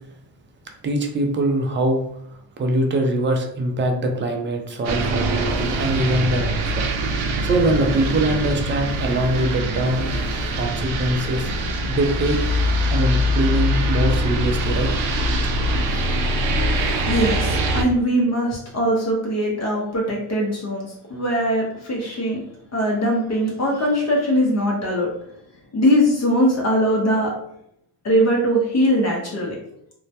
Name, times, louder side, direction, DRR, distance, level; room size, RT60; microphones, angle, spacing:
voice 1, 0.8-2.0 2.6-6.9 7.4-10.1 10.6-11.5 11.8-12.4 12.9-14.9, right 1 dB, 25° right, 3 dB, 0.4 m, -22 dB
sound 1, 4.8-17.8, equal, 70° right, 0.6 m, -23 dB
voice 2, 17.1-22.4 22.7-25.1 25.7-27.3 28.0-29.6, equal, 35° left, -2 dB, 0.6 m, -21 dB
2.2 x 2.0 x 2.7 m, 0.72 s
cardioid pair, 80°, 48 cm